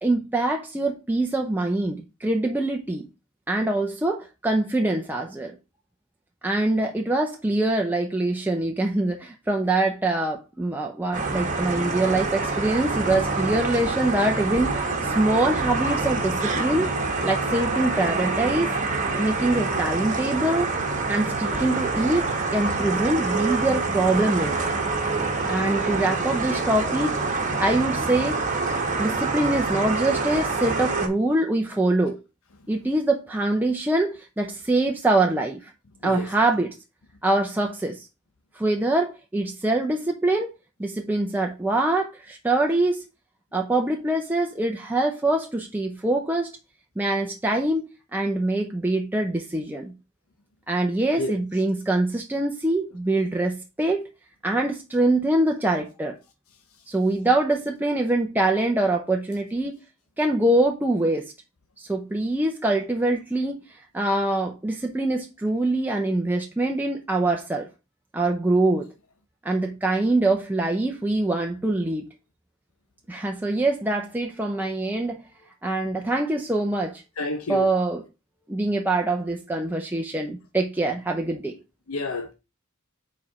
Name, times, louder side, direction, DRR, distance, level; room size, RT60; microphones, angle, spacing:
voice 1, 0.0-3.0 3.5-5.5 6.4-16.9 17.2-18.7 19.2-20.7 21.1-24.7 25.5-27.2 27.6-28.4 29.0-32.2 32.7-35.7 36.0-36.7 37.2-38.1 38.5-40.5 40.8-43.0 43.5-46.5 47.0-49.9 50.7-54.1 54.4-56.2 56.9-59.8 60.2-61.3 61.8-63.7 63.9-67.7 68.1-68.9 69.4-72.0 73.1-75.3 75.6-77.0 77.5-78.0 78.5-81.6, right 2 dB, 10° right, 0.6 m, -24 dB
sound 1, 11.1-31.1, right 3 dB, 35° right, 1.2 m, -26 dB
voice 2, 77.2-77.7 81.9-82.3, left 2 dB, 70° left, 0.8 m, -29 dB
4.8 x 4.2 x 5.0 m
head